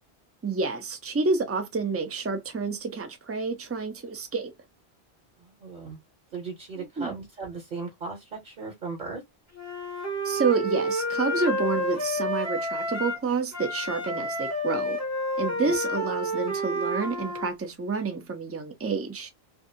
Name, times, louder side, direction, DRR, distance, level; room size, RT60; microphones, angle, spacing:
voice 1, 0.4-4.5 6.8-7.1 10.2-15.0 15.4-19.3, right 4 dB, 20° right, 0.4 m, -29 dB
voice 2, 5.4-6.0 6.3-9.2 15.7-15.8, right 4 dB, 55° right, 1.0 m, -37 dB
Wind instrument woodwind instrument, 9.6-13.2 13.5-17.5, equal, 15° left, 0.7 m, -30 dB
2.6 x 2.3 x 2.6 m
omnidirectional pair, 1.1 m